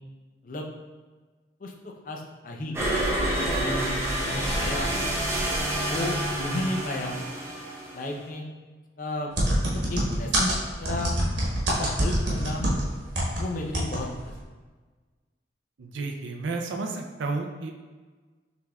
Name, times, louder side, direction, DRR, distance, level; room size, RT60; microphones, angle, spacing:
voice 1, 1.6-2.8 3.3-4.9 5.9-7.1 7.9-8.5 9.0-9.3 9.7-10.5 10.8-11.1 11.8-12.7 13.4-14.3, left 1 dB, 45° left, 0 dB, 0.5 m, -33 dB
sound 1, 2.7-8.3, right 1 dB, 15° right, 0.7 m, -28 dB
sound 2, 9.4-13.4 13.7-14.0 14.3-14.4, right 1 dB, 70° right, 1.1 m, -25 dB
voice 2, 15.8-17.7, right 3 dB, 85° right, 3 dB, 0.5 m, -32 dB
5.9 x 3.4 x 2.3 m, 1.3 s
head